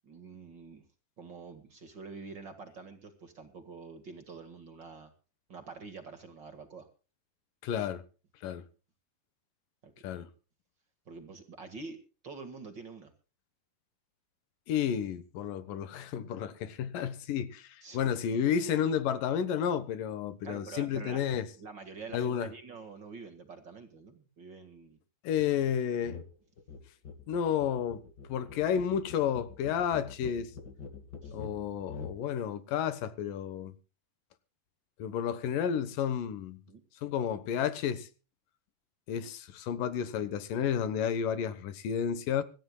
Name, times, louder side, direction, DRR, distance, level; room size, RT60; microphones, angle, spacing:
voice 1, 0.0-0.8 1.2-5.1 5.5-6.9 9.8-10.3 11.1-12.0 12.2-13.1 17.8-18.5 20.4-21.2 21.5-25.0 31.2-31.4 36.7-36.8, right 4 dB, 40° right, 2.1 m, -46 dB
voice 2, 7.6-8.0 8.4-8.6 10.0-10.3 14.7-21.5 22.1-22.5 25.2-26.2 27.3-28.0 28.3-30.5 31.3-33.7 35.0-36.6 37.0-38.1 39.1-42.4, left 8 dB, 85° left, 2.9 m, -31 dB
sound 1, 26.0-26.3 26.6-32.2, left 5 dB, 40° left, 1.7 m, -45 dB
25.5 x 14.0 x 2.3 m
omnidirectional pair, 3.8 m